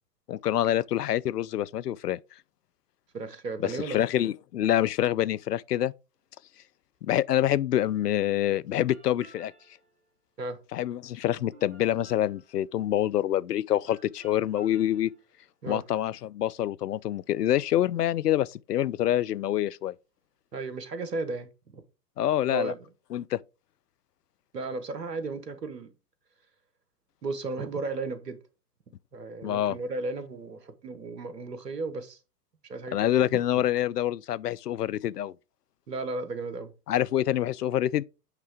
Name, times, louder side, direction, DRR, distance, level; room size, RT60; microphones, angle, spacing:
voice 1, 0.3-2.2 3.6-5.9 7.0-9.5 10.7-15.1 15.7-19.9 22.2-22.7 23.1-23.4 29.4-29.8 32.9-35.3 36.9-38.0, left 12 dB, 75° left, 0.5 m, -26 dB
voice 2, 3.1-4.0 10.4-10.6 15.6-15.8 20.5-21.8 22.5-22.8 24.5-25.9 27.2-28.4 29.1-32.2 32.7-33.4 35.9-36.7, right 3 dB, 80° right, 1.2 m, -34 dB
sound 1, 8.9-10.0 11.4-12.8 13.9-15.3, right 2 dB, 60° right, 1.8 m, -55 dB
8.1 x 3.3 x 4.7 m
figure-of-eight pair, 105°, 48 cm